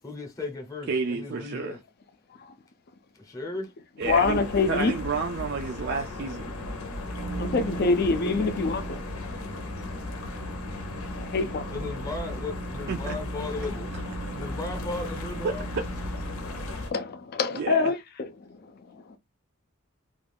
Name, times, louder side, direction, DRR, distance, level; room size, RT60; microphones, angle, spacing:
voice 1, 0.0-1.8 3.1-3.7 11.7-13.9 14.3-15.7, left 3 dB, 15° left, 0.7 m, -36 dB
voice 2, 0.9-1.8 4.0-6.5 12.9-13.2 15.4-15.5 16.7-16.9 17.5-17.9, right 4 dB, 50° right, 0.4 m, -31 dB
sound 1, 4.0-16.9, left 2 dB, 85° left, 0.7 m, -36 dB
voice 3, 4.0-4.9 7.4-9.0 11.2-11.7 16.3-19.0, left 4 dB, 45° left, 0.4 m, -26 dB
sound 2, 6.8-16.7, right 5 dB, 90° right, 0.6 m, -40 dB
2.4 x 2.3 x 3.4 m
head